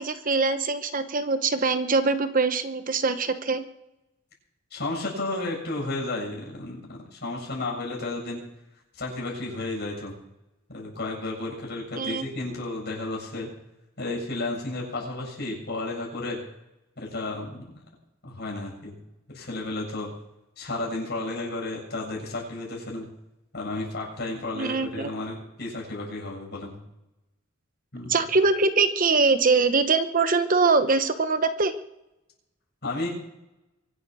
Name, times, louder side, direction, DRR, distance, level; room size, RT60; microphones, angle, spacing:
voice 1, 0.0-3.6 12.0-12.3 24.5-25.1 28.1-31.7, right 4 dB, 40° right, 10 dB, 0.9 m, -23 dB
voice 2, 4.7-8.4 8.9-10.2 10.7-13.5 14.0-16.4 17.0-17.8 18.2-19.0 19.3-20.1 20.6-23.1 23.5-26.8 27.9-28.2 32.8-33.1, left 2 dB, 55° left, -2 dB, 7.6 m, -32 dB
24.0 x 8.8 x 6.3 m, 0.91 s
head